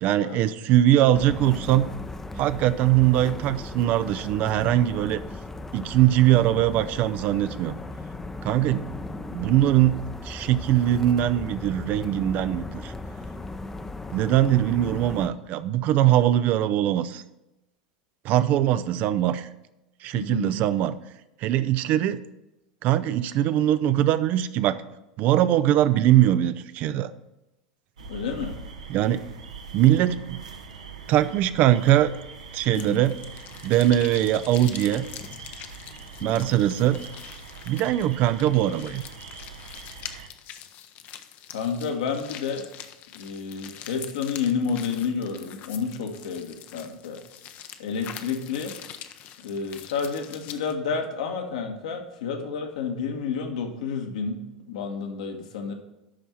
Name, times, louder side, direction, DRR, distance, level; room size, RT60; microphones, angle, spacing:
voice 1, 0.0-1.9 2.4-5.2 5.7-7.8 8.4-8.9 9.3-12.9 14.1-17.2 18.2-19.5 20.0-20.9 21.4-22.2 22.8-24.8 25.2-27.1 28.9-29.2 29.7-30.4 31.1-32.1 32.5-33.2 33.6-35.1 36.2-37.0 37.7-39.0, right 12 dB, 45° right, 13 dB, 0.5 m, -21 dB
sound 1, 1.1-15.3, left 2 dB, 10° left, 0.6 m, -37 dB
voice 2, 20.1-20.5 28.1-28.5 32.7-33.0 36.2-36.5 41.5-42.7 43.1-47.2 47.8-48.7 49.4-55.7, left 5 dB, 65° left, 3 dB, 1.4 m, -30 dB
sound 2, 28.0-40.3, right 4 dB, 70° right, 0.9 m, -43 dB
sound 3, 32.7-50.7, left 10 dB, 45° left, 0.7 m, -44 dB
11.5 x 4.6 x 5.8 m, 0.92 s
figure-of-eight pair, 80°, 4 cm